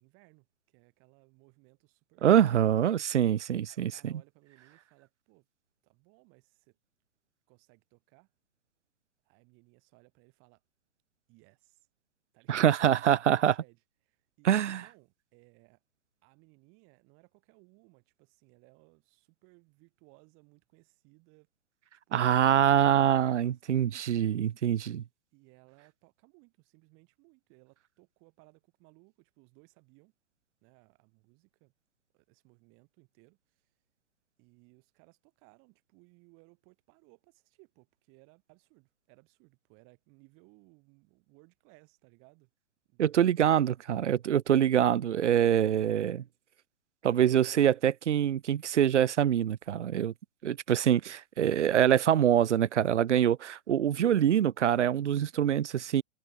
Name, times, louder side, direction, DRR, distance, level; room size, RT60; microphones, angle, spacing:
voice 1, 0.0-2.7 3.6-5.5 5.8-6.8 7.5-8.3 9.3-10.6 11.3-11.9 12.3-15.8 16.2-21.5 22.1-22.3 23.0-23.8 25.3-30.1 30.6-31.7 32.1-33.7 34.4-42.5 42.9-43.5, right 31 dB, 35° right, 7.0 m, -62 dB
voice 2, 2.2-4.1 12.5-13.5 14.4-14.8 22.1-25.0 43.0-46.2 47.0-50.1 50.4-56.0, right 10 dB, 80° right, 0.5 m, -25 dB
figure-of-eight pair, 110°, 35 cm